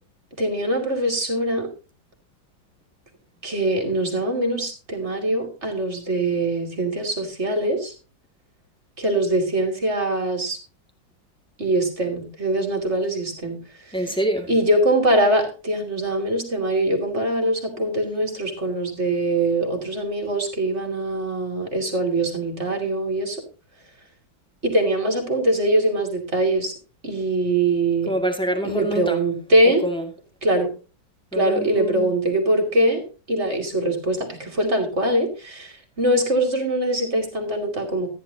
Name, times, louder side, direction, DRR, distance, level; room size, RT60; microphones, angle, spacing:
voice 1, 0.4-1.7 3.4-7.9 9.0-10.6 11.6-13.6 14.5-23.4 24.6-26.7 27.0-28.1 28.6-29.8 30.4-30.7 31.3-33.0 33.3-38.1, right 1 dB, 35° right, 2.9 m, -22 dB
voice 2, 13.9-14.5 28.1-29.2 29.8-30.1 31.3-32.1, right 1 dB, 5° left, 2.1 m, -26 dB
14.0 x 10.5 x 2.8 m
omnidirectional pair, 2.1 m